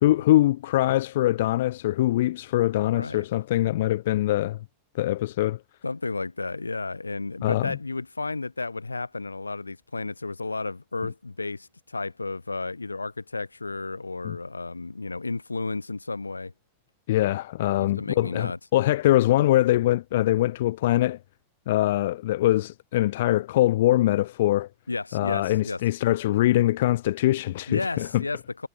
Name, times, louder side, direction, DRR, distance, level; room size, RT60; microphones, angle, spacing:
voice 1, 0.0-4.6 4.9-5.6 7.4-7.8 14.2-14.4 17.1-21.2 21.7-24.7 25.1-28.2, left 15 dB, 55° left, 0.5 m, -23 dB
voice 2, 2.9-3.2 5.8-16.5 17.8-18.6 24.9-25.8 27.7-28.7, left 3 dB, 80° left, 0.8 m, -32 dB
figure-of-eight pair, 90°, 0 cm